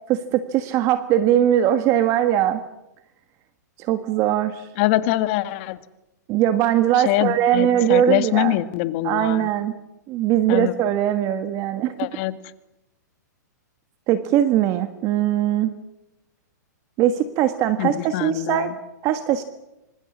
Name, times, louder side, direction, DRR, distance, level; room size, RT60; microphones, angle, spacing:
voice 1, 0.1-2.6 3.8-4.7 6.3-8.5 9.0-9.7 10.1-11.9 14.1-15.7 17.0-18.8 19.0-19.4, right 11 dB, 30° right, 10 dB, 1.5 m, -20 dB
voice 2, 4.8-5.8 7.0-9.5 10.5-10.7 12.0-12.3 17.8-18.7, left 16 dB, 40° left, 12 dB, 1.6 m, -23 dB
26.5 x 25.5 x 7.4 m, 0.94 s
hypercardioid pair, 150°, 10 cm